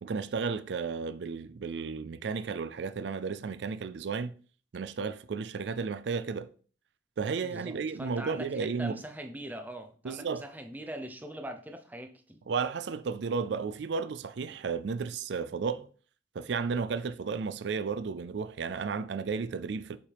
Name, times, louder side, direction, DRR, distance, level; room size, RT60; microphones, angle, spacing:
voice 1, 0.0-4.3 4.7-6.5 7.2-9.0 10.0-10.4 12.5-15.9 16.3-20.0, right 5 dB, 65° right, 0.4 m, -33 dB
voice 2, 7.4-12.4, right 1 dB, 10° right, 0.7 m, -42 dB
8.4 x 5.4 x 3.5 m
head